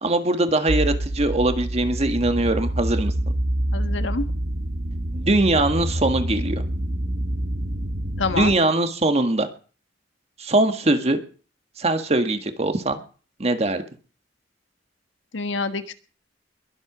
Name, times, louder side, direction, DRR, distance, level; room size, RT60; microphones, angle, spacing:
voice 1, 0.0-3.1 5.1-6.6 8.3-9.5 10.4-11.2 11.8-13.0 13.4-13.8, right 2 dB, 35° right, 8 dB, 1.7 m, -21 dB
sound 1, 0.7-8.6, right 1 dB, 50° right, 1.2 m, -26 dB
voice 2, 3.7-4.2 8.2-8.5 15.3-15.9, left 4 dB, 90° left, 10 dB, 1.5 m, -26 dB
21.5 x 8.0 x 6.1 m, 0.40 s
head